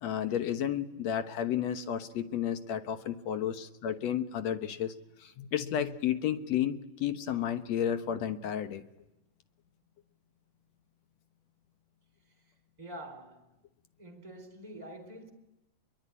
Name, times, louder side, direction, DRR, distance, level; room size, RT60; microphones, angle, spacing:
voice 1, 0.0-5.0 5.2-8.8, left 10 dB, 60° left, 1.9 m, -32 dB
voice 2, 12.8-13.5 14.0-15.3, right 1 dB, 10° right, 3.8 m, -46 dB
27.0 x 22.5 x 9.8 m
omnidirectional pair, 4.2 m